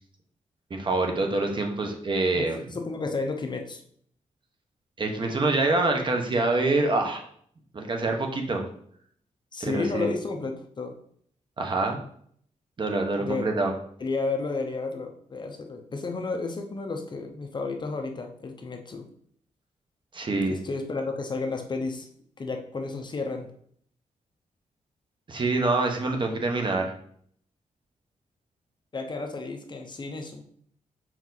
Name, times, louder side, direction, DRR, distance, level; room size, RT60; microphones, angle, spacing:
voice 1, 0.7-2.7 5.0-7.2 7.7-8.6 9.6-10.1 11.6-12.0 12.8-13.7 20.1-20.6 25.3-26.9, right 2 dB, 40° right, 3 dB, 1.0 m, -26 dB
voice 2, 2.3-3.8 9.5-10.9 13.2-13.5 14.0-19.0 20.5-22.1 22.4-23.5 28.9-30.4, left 3 dB, 35° left, 3 dB, 0.8 m, -32 dB
5.8 x 4.6 x 4.0 m, 0.62 s
wide cardioid pair, 130°, 13 cm